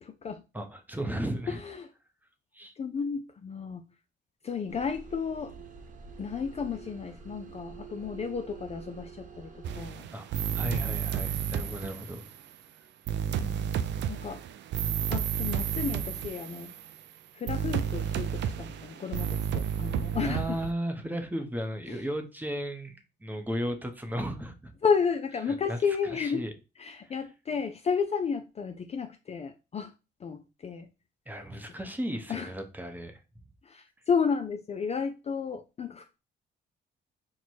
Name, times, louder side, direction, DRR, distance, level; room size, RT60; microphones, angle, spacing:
voice 1, 0.0-0.4 1.5-1.9 2.8-3.8 4.4-5.5 6.2-10.1 13.3-13.8 14.1-14.4 15.1-16.7 17.3-20.6 21.9-22.0 24.8-26.4 26.8-29.9 30.2-30.9 32.3-32.5 33.7-36.2, left 6 dB, 35° left, 0.4 m, -32 dB
voice 2, 0.5-1.6 2.5-2.7 10.1-12.2 20.2-24.7 25.5-25.8 26.2-26.5 31.3-33.2, equal, 10° right, 0.7 m, -35 dB
sound 1, 4.7-9.8, right 5 dB, 40° right, 1.0 m, -47 dB
sound 2, 9.6-12.4 13.1-17.0 17.5-20.7, right 9 dB, 65° right, 0.4 m, -31 dB
4.5 x 2.2 x 4.3 m
cardioid pair, 90°, 20 cm